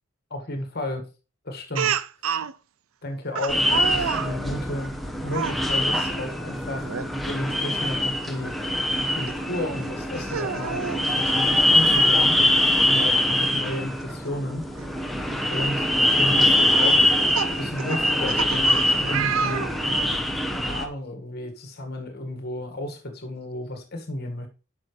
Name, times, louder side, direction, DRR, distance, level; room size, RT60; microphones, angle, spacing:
voice 1, 0.3-1.1 1.5-2.0 3.0-4.9 5.2-6.9 7.2-8.6 9.1-10.8 11.1-12.4 12.9-14.7 15.4-19.7 20.5-24.5, left 1 dB, 50° left, 1.8 m, -33 dB
Speech, 1.7-2.5 3.3-4.3 5.2-5.6 6.8-7.1 7.5-7.6 9.3-9.4 10.2-11.0 12.4-12.5 12.8-12.9 14.8-14.9 15.5-15.7 16.8-20.2, right 7 dB, 85° right, 0.5 m, -29 dB
sound 1, 3.5-20.9, left 1 dB, ahead, 0.9 m, -23 dB
9.8 x 5.9 x 3.2 m
head